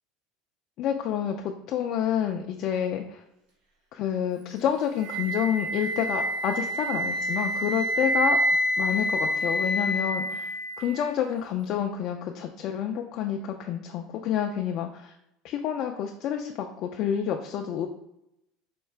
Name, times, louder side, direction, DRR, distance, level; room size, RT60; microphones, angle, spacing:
voice 1, 0.8-3.2 3.9-8.4 8.8-10.5 10.8-15.1 15.4-17.9, left 9 dB, 45° left, 2 dB, 0.3 m, -29 dB
Wind instrument woodwind instrument, 5.0-11.0, equal, 80° right, 1.4 m, -27 dB
4.4 x 2.3 x 3.3 m, 0.81 s
cardioid pair, 160°, 0 cm